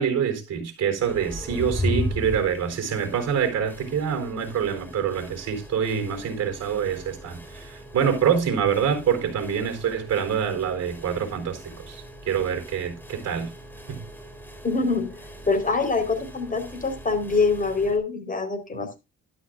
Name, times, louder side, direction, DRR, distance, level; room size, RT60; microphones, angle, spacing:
voice 1, 0.0-13.5 13.9-14.0, right 7 dB, 55° right, 4.3 m, -26 dB
sound 1, 1.0-18.0, left 1 dB, 5° left, 3.6 m, -37 dB
voice 2, 14.6-19.0, left 4 dB, 25° left, 4.3 m, -25 dB
12.5 x 11.5 x 2.5 m
cardioid pair, 90°, 30 cm